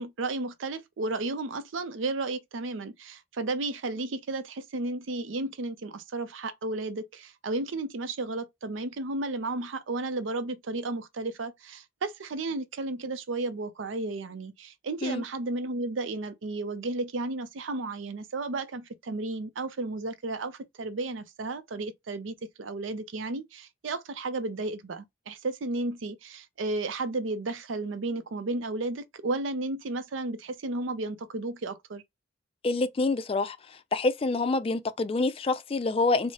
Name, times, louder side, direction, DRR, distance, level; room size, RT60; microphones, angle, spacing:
voice 1, 0.0-32.0, right 2 dB, 85° right, 0.6 m, -33 dB
voice 2, 32.6-33.6 33.9-36.3, left 3 dB, 30° left, 0.3 m, -26 dB
4.6 x 2.1 x 2.8 m
head